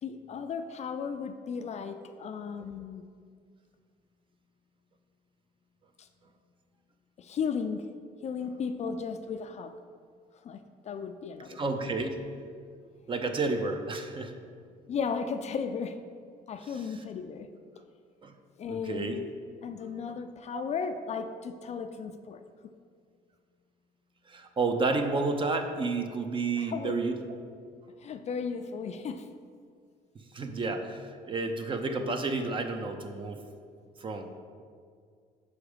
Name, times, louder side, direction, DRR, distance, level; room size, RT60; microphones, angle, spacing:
voice 1, 0.0-3.0 6.0-6.1 7.2-7.8 8.2-9.7 10.4-11.6 14.9-16.0 16.5-17.5 18.6-19.3 19.6-22.4 26.6-26.9 28.0-29.3, left 6 dB, 40° left, 8 dB, 0.4 m, -35 dB
voice 2, 11.6-12.2 13.1-14.3 16.7-16.8 18.2-18.3 18.7-19.2 20.5-20.6 24.3-27.4 30.3-33.4 34.0-34.3, right 3 dB, 30° right, 6 dB, 0.6 m, -31 dB
6.2 x 4.8 x 5.0 m, 2.1 s
cardioid pair, 110°, 17 cm